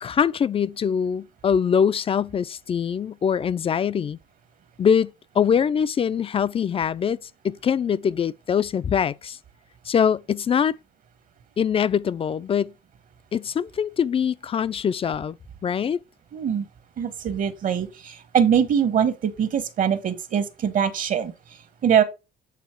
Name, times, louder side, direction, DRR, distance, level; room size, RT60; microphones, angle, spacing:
voice 1, 0.0-4.2 4.8-7.2 7.4-9.4 9.9-10.8 11.6-12.7 13.3-15.4 15.6-16.0, left 7 dB, 35° left, 0.5 m, -23 dB
voice 2, 16.3-16.6 17.0-21.3 21.8-22.0, right 8 dB, 50° right, 1.4 m, -22 dB
8.2 x 4.1 x 4.6 m
cardioid pair, 110°, 17 cm